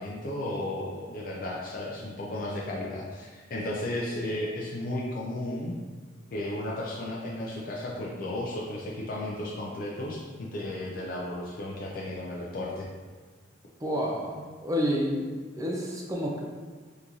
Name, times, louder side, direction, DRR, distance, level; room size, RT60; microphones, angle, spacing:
voice 1, 0.0-5.7 6.3-12.9, left 1 dB, 50° left, -4 dB, 0.4 m, -34 dB
voice 2, 13.8-15.2 15.6-16.4, equal, 20° right, -2 dB, 0.4 m, -29 dB
3.7 x 2.5 x 2.9 m, 1.5 s
head